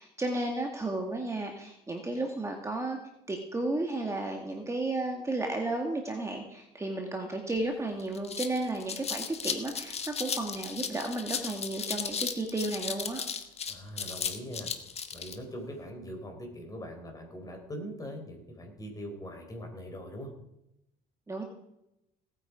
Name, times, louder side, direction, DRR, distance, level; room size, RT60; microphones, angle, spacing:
voice 1, 0.0-3.0 3.3-13.2 21.3-21.4, right 2 dB, 15° right, 2 dB, 1.9 m, -33 dB
sound 1, 7.6-7.7 8.0-15.4, left 6 dB, 40° left, 1.4 m, -35 dB
voice 2, 13.7-14.7 15.1-20.3, equal, 20° left, 2 dB, 4.4 m, -42 dB
18.0 x 9.0 x 5.0 m, 0.85 s
cardioid pair, 110°, 17 cm